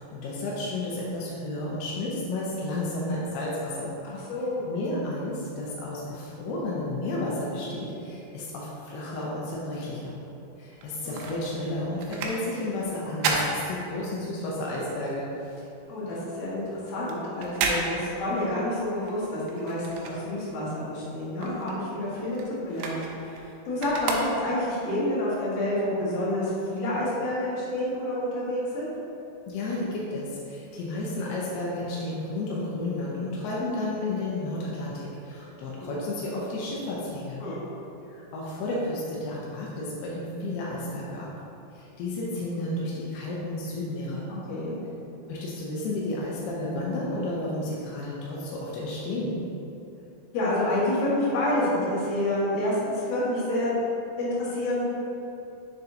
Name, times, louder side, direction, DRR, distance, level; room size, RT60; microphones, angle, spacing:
voice 1, 0.0-3.9 4.7-10.2 10.6-15.3 29.5-37.4 38.1-41.3 41.7-44.2 45.3-49.3, left 2 dB, 80° left, -5 dB, 2.3 m, -32 dB
voice 2, 4.0-4.6 11.0-11.2 15.9-28.9 35.7-36.0 37.4-37.6 42.5-42.6 44.5-44.7 50.3-53.7 54.2-54.8, left 1 dB, 60° left, -8 dB, 3.0 m, -28 dB
sound 1, 10.7-14.4 14.8-20.7 21.1-24.8 25.4-25.5, right 3 dB, 85° right, 2.3 m, -33 dB
7.0 x 6.7 x 2.8 m, 2.8 s
omnidirectional pair, 5.6 m